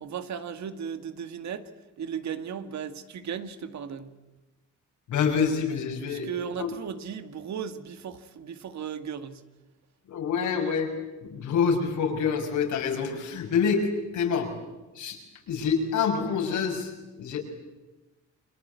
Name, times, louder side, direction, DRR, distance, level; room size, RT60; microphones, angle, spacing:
voice 1, 0.0-1.7 2.0-4.1 6.1-9.4, right 7 dB, 65° right, 9 dB, 2.0 m, -36 dB
voice 2, 5.1-6.3 6.6-6.7 10.1-10.9 11.2-13.9 14.1-14.5 14.9-15.2 15.5-17.4, left 6 dB, 80° left, 2 dB, 6.5 m, -26 dB
29.5 x 23.0 x 8.3 m, 1.1 s
cardioid pair, 90°, 30 cm